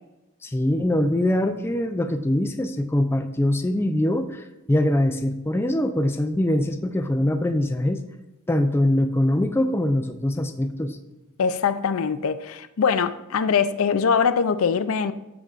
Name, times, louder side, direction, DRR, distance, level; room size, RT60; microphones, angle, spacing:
voice 1, 0.4-8.0 8.5-11.0, left 1 dB, 10° left, 0.3 m, -23 dB
voice 2, 11.4-15.1, left 6 dB, 75° left, 0.4 m, -22 dB
13.0 x 6.9 x 2.5 m
head